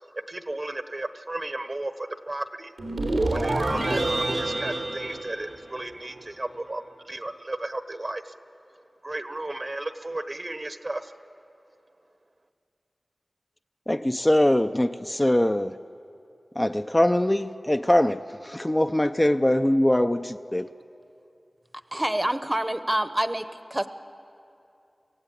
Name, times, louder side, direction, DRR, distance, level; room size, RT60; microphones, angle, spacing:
voice 1, 0.1-2.7 3.3-8.3 9.0-11.2, right 2 dB, 45° right, 9 dB, 1.1 m, -34 dB
sound 1, 2.8-6.0, right 2 dB, 90° right, 3.3 m, -27 dB
voice 2, 13.9-15.7 16.6-20.7, left 1 dB, 20° left, 7 dB, 0.5 m, -22 dB
voice 3, 21.9-23.9, right 1 dB, 20° right, 11 dB, 0.9 m, -27 dB
25.5 x 16.0 x 8.6 m, 2.7 s
wide cardioid pair, 65°, 0 cm